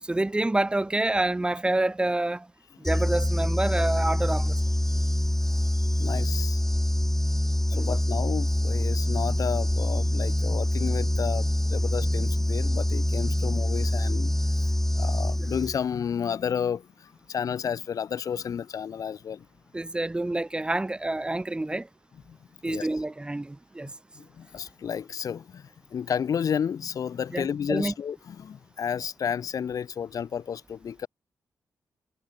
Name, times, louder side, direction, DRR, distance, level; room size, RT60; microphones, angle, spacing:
voice 1, 0.0-2.5 2.8-4.5 7.7-8.0 15.4-15.5 19.7-21.9 22.6-23.9 27.3-27.9, right 2 dB, 15° right, 4.9 m, -27 dB
sound 1, 2.9-16.0, left 1 dB, 5° left, 1.1 m, -25 dB
voice 2, 5.7-6.6 7.7-19.5 22.3-22.4 22.7-22.9 23.8-31.1, left 7 dB, 65° left, 2.7 m, -32 dB
cardioid pair, 115°, 7 cm